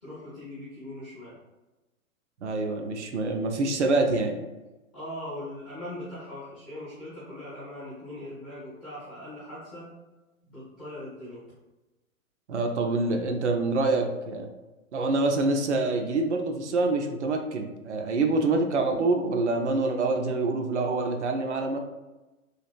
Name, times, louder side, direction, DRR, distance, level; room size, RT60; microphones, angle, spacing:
voice 1, 0.0-1.3 4.9-9.9 10.4-11.4, left 1 dB, 5° left, -15 dB, 0.4 m, -40 dB
voice 2, 2.4-4.4 12.5-14.5 14.9-21.8, right 3 dB, 55° right, 3 dB, 0.5 m, -26 dB
3.2 x 2.4 x 2.4 m, 1.1 s
figure-of-eight pair, 120°, 43 cm